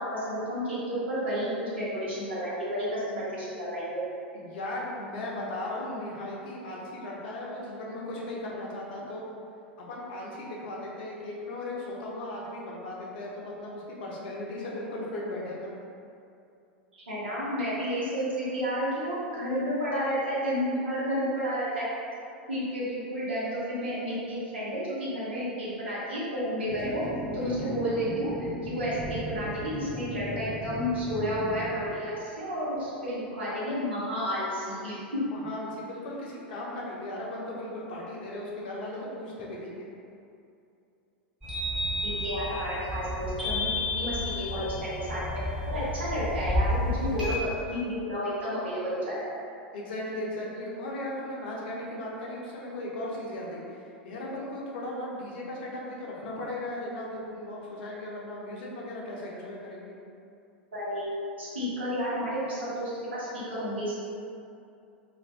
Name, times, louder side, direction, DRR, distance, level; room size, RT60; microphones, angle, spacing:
voice 1, 0.0-4.0 16.9-21.9 22.5-27.0 27.3-28.3 28.6-35.0 42.0-43.7 43.9-49.3 60.7-63.9, equal, 75° right, -10 dB, 1.1 m, -31 dB
voice 2, 4.3-9.3 9.9-15.7 26.9-27.0 27.4-27.7 35.2-39.9 49.7-59.9, left 1 dB, 60° left, -4 dB, 0.7 m, -37 dB
sound 1, 26.7-31.7, right 1 dB, 25° right, 0.6 m, -37 dB
sound 2, 41.4-47.4, left 1 dB, 5° right, 1.3 m, -31 dB
2.5 x 2.4 x 3.2 m, 2.6 s
figure-of-eight pair, 90°, 6 cm